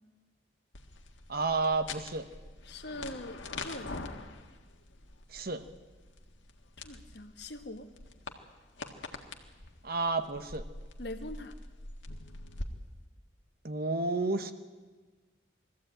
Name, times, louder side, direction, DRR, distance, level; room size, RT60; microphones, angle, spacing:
sound 1, 0.7-12.7, left 3 dB, 70° left, 1.6 m, -45 dB
voice 1, 1.3-2.3 5.3-5.7 9.8-10.6 13.6-14.5, right 3 dB, 50° right, 10 dB, 1.0 m, -31 dB
voice 2, 2.7-4.3 6.8-7.9 11.0-11.5, left 1 dB, 55° left, 7 dB, 1.4 m, -43 dB
21.0 x 14.5 x 8.9 m, 1.4 s
head